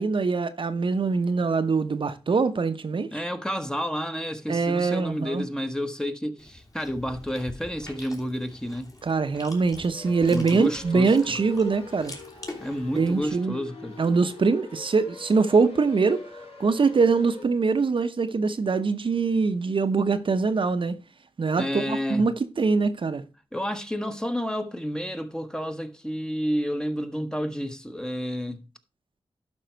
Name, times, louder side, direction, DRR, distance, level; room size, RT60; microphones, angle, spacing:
voice 1, 0.0-3.1 4.5-5.4 9.0-12.1 12.9-13.6 14.0-16.2 16.6-21.0 21.4-23.2, right 4 dB, 60° right, 0.9 m, -23 dB
voice 2, 3.1-8.9 10.3-11.4 12.6-14.0 21.6-22.3 23.5-28.6, equal, 5° left, 1.2 m, -30 dB
Chewing mastication, 6.4-13.3, left 2 dB, 35° left, 3.1 m, -45 dB
sound 1, 9.9-17.4, left 3 dB, 85° left, 4.2 m, -44 dB
12.0 x 5.3 x 4.5 m
wide cardioid pair, 75°, 10 cm